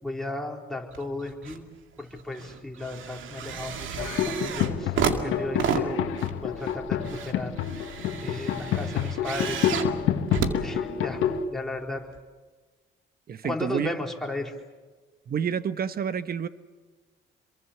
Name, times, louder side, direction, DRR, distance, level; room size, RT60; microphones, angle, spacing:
voice 1, 0.0-1.6 2.0-4.9 5.2-6.0 6.4-7.5 8.2-9.7 10.6-11.2 11.5-12.0 13.4-14.5, left 2 dB, ahead, -1 dB, 4.3 m, -35 dB
sound 1, 0.9-1.6 2.0-11.4 12.1-12.2, right 7 dB, 80° right, 2.2 m, -32 dB
sound 2, 4.0-11.4, left 8 dB, 85° left, 1.6 m, -28 dB
voice 2, 13.3-13.9 15.3-16.5, right 7 dB, 50° right, 12 dB, 1.2 m, -29 dB
27.5 x 23.0 x 7.1 m, 1.3 s
cardioid pair, 90°, 20 cm